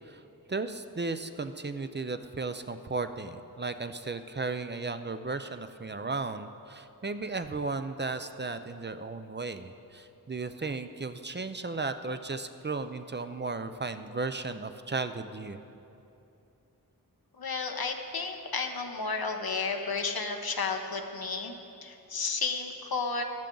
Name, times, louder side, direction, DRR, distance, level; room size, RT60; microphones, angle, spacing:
voice 1, 0.5-15.6, right 3 dB, 30° right, 9 dB, 0.5 m, -35 dB
voice 2, 17.4-21.6 21.8-23.2, left 4 dB, 85° left, 4 dB, 1.0 m, -32 dB
14.5 x 11.5 x 3.9 m, 2.8 s
wide cardioid pair, 65°, 36 cm